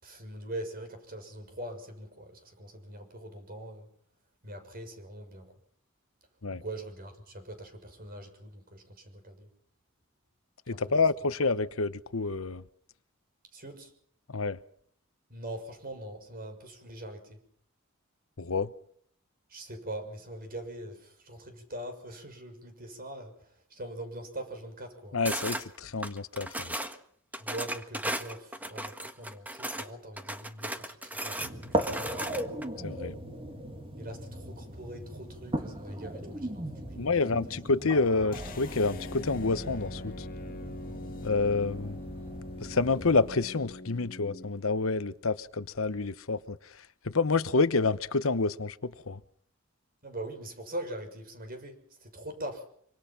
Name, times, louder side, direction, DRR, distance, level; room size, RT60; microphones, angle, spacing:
voice 1, 0.0-3.9 4.4-5.5 6.5-9.5 10.7-10.8 11.2-11.3 13.5-13.9 15.3-17.4 19.5-25.2 27.3-32.3 33.9-37.4 50.0-52.7, right 1 dB, 45° right, 6.3 m, -42 dB
voice 2, 10.7-12.6 14.3-14.6 18.4-18.7 25.1-26.8 32.8-33.1 37.0-40.3 41.2-42.0 42.6-46.6 47.0-49.2, left 3 dB, 75° left, 1.0 m, -28 dB
sound 1, 25.2-25.6 26.0-27.0 27.3-29.9 30.2-32.7, right 1 dB, 10° right, 1.5 m, -36 dB
sound 2, 31.4-43.3, right 1 dB, 25° right, 2.6 m, -38 dB
sound 3, 38.3-44.5, left 1 dB, 45° left, 1.9 m, -42 dB
25.5 x 25.5 x 5.9 m
head